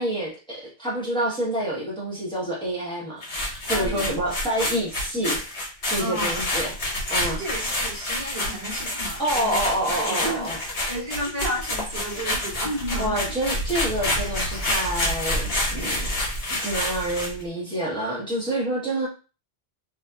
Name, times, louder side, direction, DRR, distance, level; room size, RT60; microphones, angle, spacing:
voice 1, 0.0-3.2 3.5-6.7 7.1-7.4 9.2-10.6 13.0-16.1 16.5-19.1, right 1 dB, 5° left, -5 dB, 0.8 m, -28 dB
sound 1, 3.2-17.4, left 1 dB, 90° left, 1.3 m, -28 dB
voice 2, 3.7-4.1 6.0-6.4 7.2-13.2, right 1 dB, 40° right, -4 dB, 1.0 m, -33 dB
2.7 x 2.4 x 2.2 m, 0.33 s
omnidirectional pair, 1.1 m